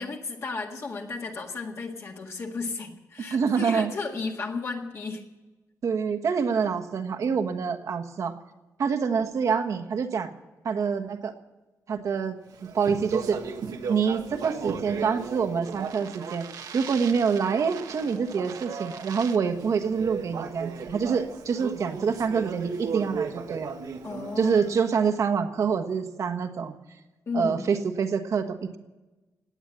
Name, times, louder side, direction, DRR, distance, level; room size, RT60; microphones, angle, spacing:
voice 1, 0.0-5.2 24.0-24.5 24.8-24.9 27.3-27.6, left 4 dB, 50° left, 1 dB, 1.8 m, -34 dB
voice 2, 3.3-3.9 5.8-8.4 8.8-10.3 10.6-11.3 11.9-13.6 13.9-23.7 24.4-26.7 27.3-28.8, right 6 dB, 60° right, 7 dB, 1.4 m, -26 dB
Speech, 12.5-24.9, right 6 dB, 85° right, 1.4 m, -36 dB
18.0 x 9.1 x 8.8 m, 1.1 s
wide cardioid pair, 145°, 6 cm